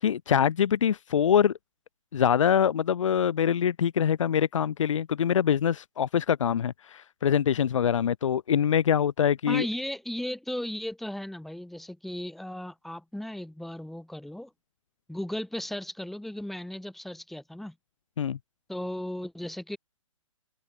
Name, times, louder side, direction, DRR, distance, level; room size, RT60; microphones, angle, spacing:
voice 1, 0.0-1.5 2.1-9.7 18.2-18.4, left 8 dB, 65° left, 0.8 m, -24 dB
voice 2, 9.5-14.5 15.1-17.7 18.7-19.8, left 1 dB, ahead, 2.5 m, -36 dB
open air
hypercardioid pair, 160°, 17 cm